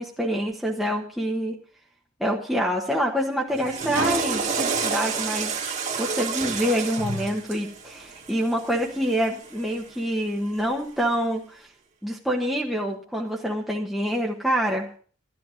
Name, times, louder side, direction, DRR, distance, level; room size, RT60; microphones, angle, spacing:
voice 1, 0.0-1.6 2.2-5.5 6.0-11.7 12.0-15.0, equal, ahead, -3 dB, 1.2 m, -26 dB
Water / Toilet flush, 3.5-9.8, right 4 dB, 35° right, 2.0 m, -29 dB
13.5 x 11.0 x 5.1 m, 0.43 s
head